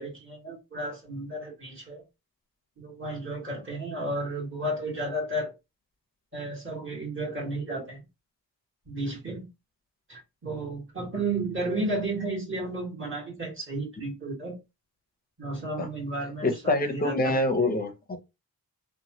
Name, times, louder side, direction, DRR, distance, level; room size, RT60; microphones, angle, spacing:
voice 1, 0.0-2.0 2.8-5.5 6.3-8.0 8.8-9.5 10.1-14.6 15.4-17.3, right 2 dB, 35° right, 1.6 m, -33 dB
voice 2, 16.4-18.2, left 2 dB, 25° left, 0.6 m, -26 dB
3.0 x 2.3 x 2.8 m
wide cardioid pair, 135°, 37 cm